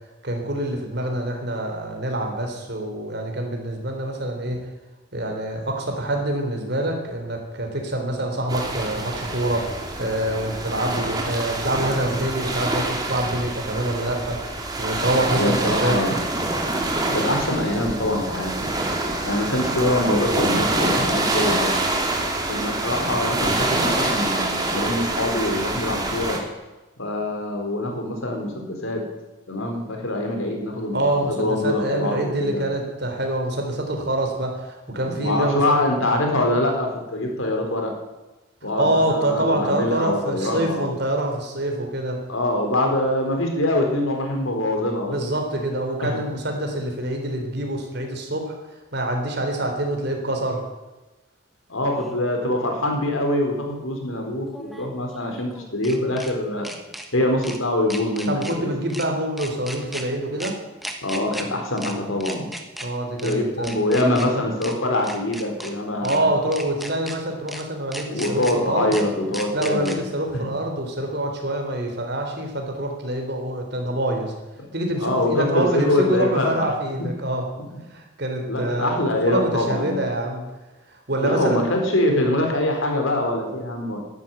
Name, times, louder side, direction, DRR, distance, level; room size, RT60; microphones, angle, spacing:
voice 1, 0.2-4.6 5.1-14.4 14.8-16.1 30.9-35.6 36.0-36.1 38.6-42.2 45.1-48.6 48.9-50.6 58.3-60.6 62.8-63.8 64.0-64.4 66.0-68.9 69.5-74.3 74.7-77.4 77.9-80.4 80.9-81.6, right 1 dB, 55° right, 3 dB, 3.7 m, -26 dB
sound 1, 8.5-26.4, right 2 dB, 20° right, 2.5 m, -26 dB
voice 2, 15.4-16.2 17.1-18.7 19.2-21.7 22.5-26.4 27.0-29.0 29.5-32.6 34.9-37.9 38.6-40.9 42.3-45.1 46.0-46.2 51.7-56.7 57.1-58.7 61.0-62.5 63.2-66.3 68.0-70.0 70.3-70.5 75.0-76.7 78.5-80.0 81.2-84.0, left 1 dB, 90° left, 3 dB, 4.1 m, -24 dB
sound 2, 52.0-52.1 54.5-56.3 56.6-57.1 57.4-57.6 57.9-58.5 58.9-59.1 59.4-60.0 60.4-60.5 60.8-61.4 61.8-61.9 62.2-62.9 63.2-63.3 63.6-64.3 64.6-64.7 65.0-65.7 66.0-66.2 66.5-67.2 67.5-67.6 67.9-68.5 68.9-69.0 69.3-70.0, equal, ahead, 1.4 m, -35 dB
13.0 x 12.0 x 9.1 m, 1.1 s
head